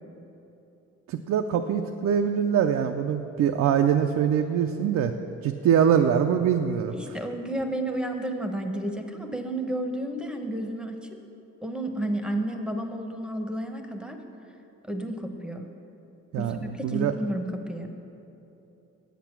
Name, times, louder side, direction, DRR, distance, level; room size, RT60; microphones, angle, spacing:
voice 1, 1.1-5.1 5.4-6.9 16.3-17.1, right 8 dB, 65° right, 5 dB, 0.5 m, -23 dB
voice 2, 6.9-11.1 11.6-14.2 14.8-15.7 16.4-18.0, right 1 dB, 5° right, 4 dB, 0.9 m, -31 dB
8.3 x 8.1 x 5.9 m, 2.9 s
cardioid pair, 90°, 30 cm